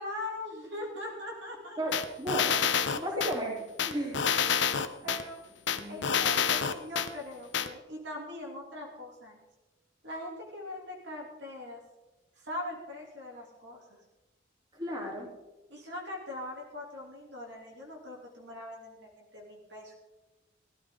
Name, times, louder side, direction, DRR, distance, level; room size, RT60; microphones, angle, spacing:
voice 1, 0.0-1.8 5.0-5.4 5.9-9.4 10.0-11.8 12.4-13.8 15.7-19.9, left 1 dB, 60° right, -1 dB, 3.0 m, -41 dB
sound 1, 1.9-3.3 3.8-5.2 5.7-7.1 7.5-7.7, left 7 dB, 65° left, 0.9 m, -27 dB
voice 2, 2.2-2.6 2.9-4.2 5.0-5.1 5.7-6.3 14.7-15.3, right 1 dB, 20° right, -3 dB, 3.7 m, -34 dB
17.0 x 13.5 x 3.9 m, 1.1 s
head